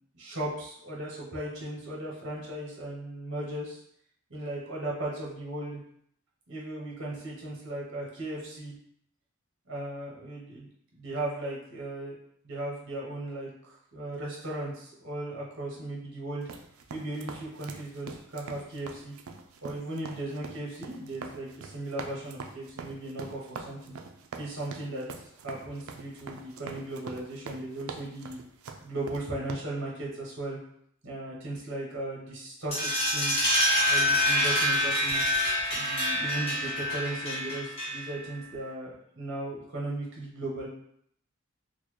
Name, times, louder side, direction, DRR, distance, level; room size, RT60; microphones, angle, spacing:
voice 1, 0.2-3.8 4.3-5.8 6.5-8.7 9.7-12.1 12.4-16.5 16.9-19.1 19.6-23.8 24.3-25.1 25.4-28.4 28.8-30.6 31.0-33.6 33.9-35.2 35.7-40.7, right 1 dB, 60° right, -4 dB, 0.9 m, -37 dB
sound 1, 16.4-29.5, right 5 dB, 85° right, 0.4 m, -43 dB
sound 2, 32.7-38.2, left 1 dB, 30° left, 1.0 m, -26 dB
3.9 x 2.1 x 3.1 m, 0.69 s
head